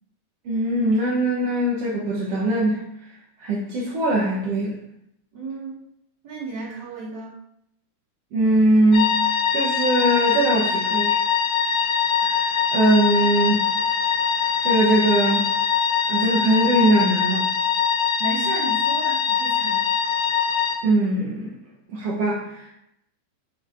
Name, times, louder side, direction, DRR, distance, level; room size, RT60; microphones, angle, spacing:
voice 1, 0.4-2.8 3.4-4.8 8.3-11.2 12.2-13.6 14.6-15.5 16.1-17.5 20.8-21.6 21.9-22.7, right 1 dB, 70° right, -4 dB, 1.5 m, -21 dB
voice 2, 5.3-5.8 6.2-7.4 18.2-19.9, right 3 dB, 35° right, -6 dB, 2.2 m, -33 dB
sound 1, 8.9-20.7, left 7 dB, 70° left, 1.3 m, -22 dB
9.1 x 6.3 x 2.6 m, 0.78 s
omnidirectional pair, 4.1 m